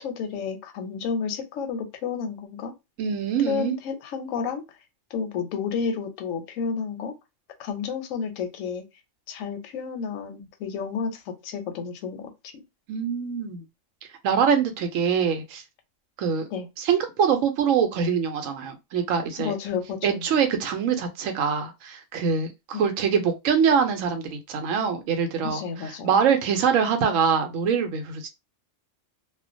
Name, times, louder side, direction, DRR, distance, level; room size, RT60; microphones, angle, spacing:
voice 1, 0.0-2.7 3.5-4.6 5.1-7.1 7.6-8.8 9.3-12.6 16.5-16.7 19.4-20.3 22.7-22.9 25.4-26.1, left 6 dB, 85° left, 1.0 m, -31 dB
voice 2, 3.0-3.7 12.9-13.6 14.2-15.6 16.2-16.4 16.8-19.5 20.0-25.6 26.0-28.3, right 7 dB, 85° right, 1.0 m, -24 dB
2.4 x 2.1 x 2.5 m
omnidirectional pair, 1.3 m